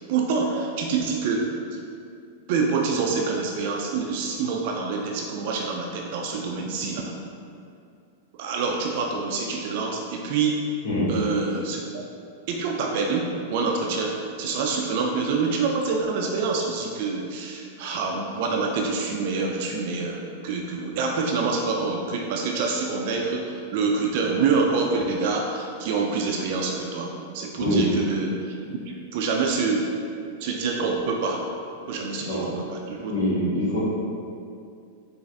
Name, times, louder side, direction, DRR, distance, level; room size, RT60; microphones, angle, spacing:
voice 1, 0.1-1.8 2.5-7.1 8.4-10.6 11.1-12.0 12.5-28.8 29.1-29.9 30.4-31.5 31.9-33.1, right 4 dB, 60° right, 0 dB, 0.3 m, -26 dB
voice 2, 27.6-27.9 32.2-32.5 33.1-33.8, equal, 65° left, -7 dB, 1.3 m, -24 dB
4.6 x 2.4 x 2.6 m, 2.4 s
hypercardioid pair, 110°, 0 cm